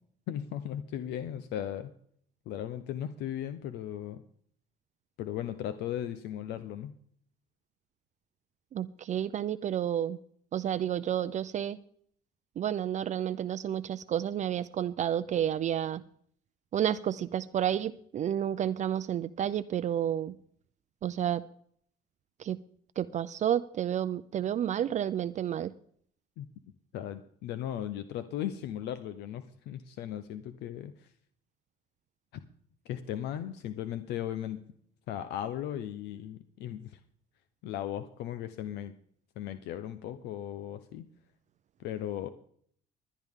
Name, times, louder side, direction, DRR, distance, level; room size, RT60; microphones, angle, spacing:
voice 1, 0.3-1.9 2.5-4.2 5.2-6.9 26.4-26.5 26.9-31.1 32.9-34.6 35.1-37.0 37.6-38.9 39.4-41.0 41.8-42.3, left 11 dB, 85° left, 11 dB, 0.8 m, -37 dB
voice 2, 8.7-10.2 10.5-11.8 12.6-16.0 16.7-20.4 21.0-21.4 22.4-22.6 23.0-25.7, right 10 dB, 45° right, 13 dB, 0.5 m, -30 dB
20.0 x 10.5 x 3.6 m, 0.62 s
cardioid pair, 110°, 17 cm